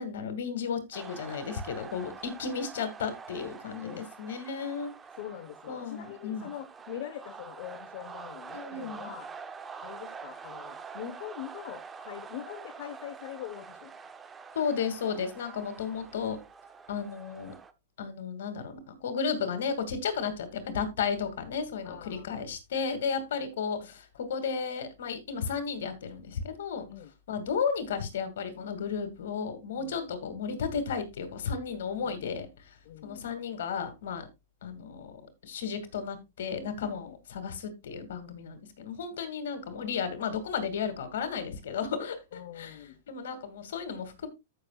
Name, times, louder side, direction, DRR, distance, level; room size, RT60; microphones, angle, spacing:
voice 1, 0.0-4.9 5.7-6.5 8.5-9.1 14.5-16.4 16.9-17.5 18.0-26.9 27.3-32.8 33.0-34.3 34.6-44.3, left 6 dB, 70° left, 2.4 m, -34 dB
sound 1, 0.9-17.7, right 5 dB, 15° right, 0.8 m, -46 dB
voice 2, 5.2-9.3 9.8-13.9 21.8-22.3 26.9-27.1 29.8-30.1 32.0-32.3 32.8-33.2 37.1-37.2 42.3-42.9, left 11 dB, 55° left, 1.1 m, -43 dB
14.5 x 6.4 x 2.4 m
hypercardioid pair, 135°, 0 cm